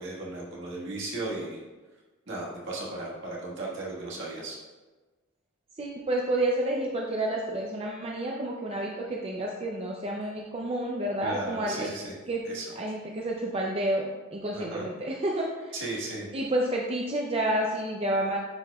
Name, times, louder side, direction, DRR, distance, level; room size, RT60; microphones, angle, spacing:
voice 1, 0.0-1.6 2.3-4.6 11.2-12.1 12.4-12.7 14.5-14.9 15.7-16.3, right 2 dB, 60° right, -4 dB, 1.6 m, -36 dB
voice 2, 5.8-11.9 12.3-12.4 12.8-15.7 16.3-18.4, right 1 dB, 30° right, -1 dB, 0.5 m, -30 dB
9.5 x 4.7 x 2.3 m, 1.3 s
head